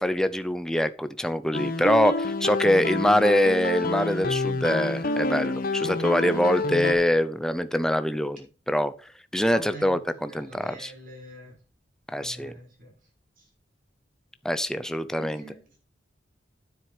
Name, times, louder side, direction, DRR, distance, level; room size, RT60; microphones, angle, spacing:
voice 1, 0.0-10.9 12.1-12.5 14.4-15.4, equal, 5° left, 0.6 m, -24 dB
sound 1, 1.5-6.9, left 2 dB, 50° left, 1.2 m, -28 dB
voice 2, 6.7-7.1 9.5-11.6 12.2-12.9 13.4-13.5 15.2-15.6, right 2 dB, 50° right, 6.3 m, -45 dB
9.5 x 7.8 x 5.1 m
head